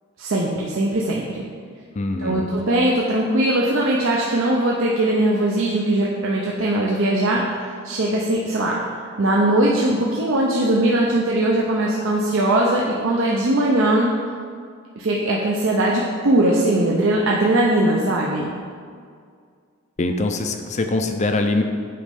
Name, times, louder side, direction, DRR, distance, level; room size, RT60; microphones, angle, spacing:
voice 1, 0.2-1.4 2.2-7.4 7.8-8.8 9.2-14.1 15.0-18.5, right 1 dB, 60° right, -3 dB, 0.6 m, -20 dB
voice 2, 2.0-2.5 20.0-21.6, left 2 dB, 30° left, 6 dB, 0.4 m, -23 dB
8.5 x 3.1 x 5.3 m, 2.1 s
head